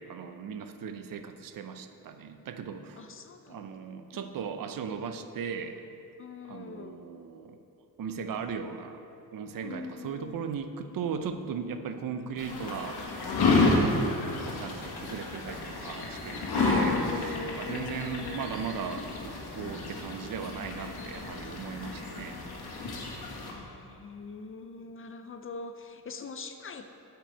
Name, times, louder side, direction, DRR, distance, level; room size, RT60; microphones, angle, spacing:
voice 1, 0.0-3.1 3.5-5.8 6.5-7.6 8.0-9.0 9.3-13.0 13.7-17.0 17.6-22.4, right 6 dB, 60° right, 8 dB, 0.7 m, -37 dB
voice 2, 3.0-3.7 4.1-4.3 6.2-7.0 9.6-10.5 16.5-18.5 23.5-26.9, left 4 dB, 35° left, 7 dB, 0.5 m, -41 dB
sound 1, 12.4-23.5, left 3 dB, 80° left, 1.8 m, -30 dB
8.6 x 5.9 x 8.1 m, 2.7 s
wide cardioid pair, 175°, 38 cm